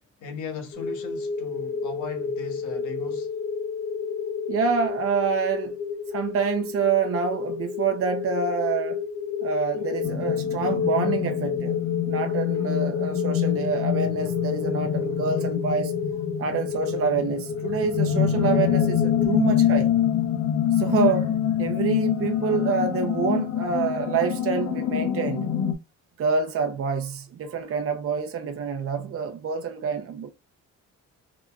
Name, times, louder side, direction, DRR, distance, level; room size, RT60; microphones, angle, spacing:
voice 1, 0.2-3.3, left 4 dB, 80° left, 1.4 m, -37 dB
sound 1, 0.7-19.3, left 6 dB, 45° left, 1.1 m, -31 dB
voice 2, 4.5-5.8 6.1-9.0 9.4-11.8 12.1-15.9 16.4-19.9 20.7-25.5 26.2-30.3, right 6 dB, 50° right, 0.7 m, -27 dB
sound 2, 10.0-25.7, left 10 dB, 60° left, 0.7 m, -26 dB
3.9 x 3.4 x 2.3 m
cardioid pair, 90°, 30 cm